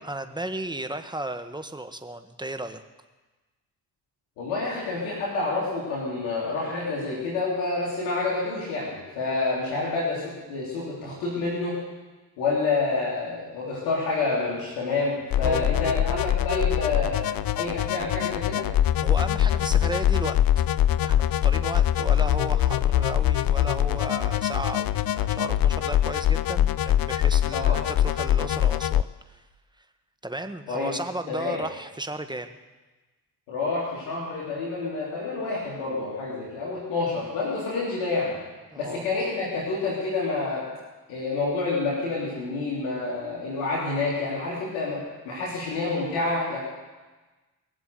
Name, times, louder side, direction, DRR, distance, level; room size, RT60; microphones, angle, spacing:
voice 1, 0.0-2.8 15.4-15.7 19.0-20.7 21.0-29.4 30.2-32.6 38.7-39.0, right 1 dB, 10° right, 7 dB, 1.4 m, -34 dB
voice 2, 4.4-11.8 12.4-17.2 17.5-18.7 27.5-27.8 30.7-30.9 31.3-31.6 33.5-38.3 38.8-40.7 41.1-46.6, left 3 dB, 85° left, -5 dB, 3.3 m, -28 dB
sound 1, 15.3-29.0, left 11 dB, 50° left, 0.6 m, -23 dB
20.5 x 7.8 x 7.9 m, 1.2 s
hypercardioid pair, 45°, 47 cm